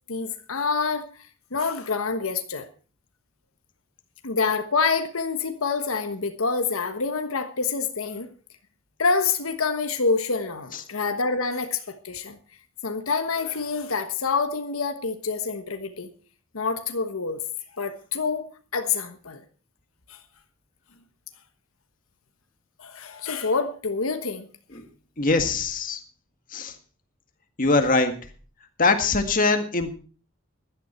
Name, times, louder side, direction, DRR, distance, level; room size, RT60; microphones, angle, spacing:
voice 1, 0.1-1.1 1.5-2.7 4.2-8.3 9.0-12.4 12.8-16.1 16.5-17.4 17.8-18.5 18.7-19.4 20.1-20.2 22.8-24.5, left 4 dB, 85° left, 8 dB, 1.3 m, -27 dB
voice 2, 25.2-26.0 26.5-26.7 27.6-28.1 28.8-29.9, left 3 dB, 40° left, 6 dB, 1.9 m, -22 dB
16.0 x 12.0 x 4.4 m, 0.38 s
head